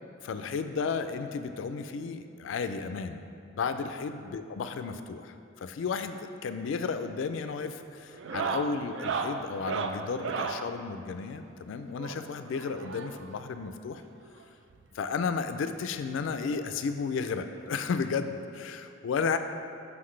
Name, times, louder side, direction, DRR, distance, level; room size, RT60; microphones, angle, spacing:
voice 1, 0.2-3.2 3.5-14.0 14.9-19.4, left 5 dB, 75° left, 9 dB, 0.3 m, -33 dB
sound 1, 6.6-6.9 7.2-7.6 8.1-10.7 12.0-13.4 14.4-14.5 14.7-14.8 15.3-15.4 16.7-16.8 18.1-18.2, right 5 dB, 65° right, 0.3 m, -35 dB
5.8 x 5.8 x 3.2 m, 2.6 s
head